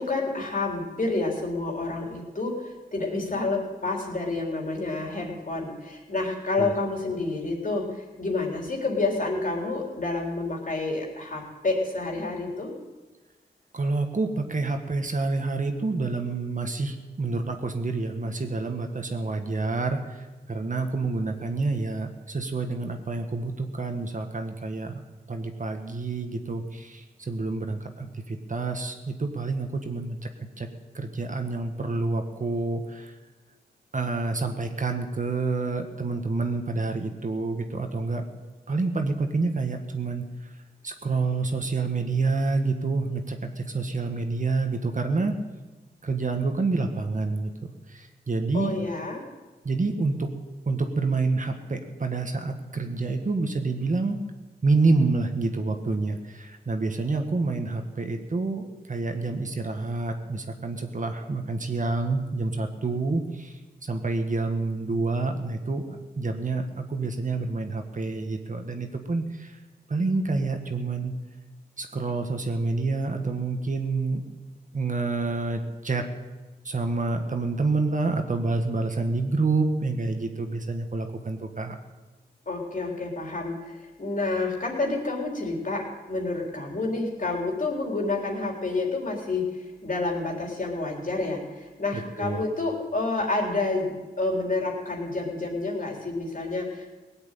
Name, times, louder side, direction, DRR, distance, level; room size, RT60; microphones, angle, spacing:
voice 1, 0.0-12.7 48.5-49.2 82.5-96.9, left 3 dB, 50° left, 0 dB, 3.8 m, -29 dB
voice 2, 13.7-20.2 20.5-25.0 25.3-30.2 30.6-30.7 30.9-33.1 33.9-38.2 38.7-40.2 40.8-45.4 46.0-47.5 47.9-48.7 49.6-50.3 50.6-54.2 54.6-63.5 63.8-69.6 69.9-71.1 71.8-74.2 74.7-76.0 76.6-81.8 91.9-92.4, right 3 dB, 50° right, 5 dB, 1.7 m, -28 dB
18.0 x 8.0 x 9.2 m, 1.2 s
cardioid pair, 60°, 17 cm